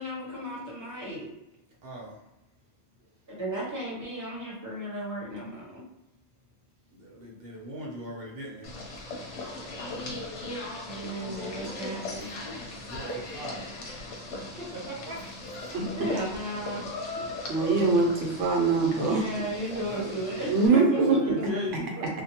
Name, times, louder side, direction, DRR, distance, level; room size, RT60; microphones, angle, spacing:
voice 1, 0.0-1.3 3.3-5.8 10.8-12.4 16.0-16.9 17.2-17.3 19.0-21.4 22.0-22.1, equal, 20° right, -5 dB, 0.9 m, -35 dB
voice 2, 1.8-2.2 6.9-8.7 9.7-10.2 12.5-13.7 14.6-15.2 19.8-20.2 20.7-21.9, equal, 60° right, -3 dB, 0.8 m, -39 dB
sound 1, 8.6-20.7, left 2 dB, 85° left, 1.0 m, -38 dB
voice 3, 17.5-19.2 20.5-21.3, right 4 dB, 90° right, 0 dB, 1.0 m, -23 dB
2.6 x 2.1 x 2.8 m, 0.93 s
omnidirectional pair, 1.2 m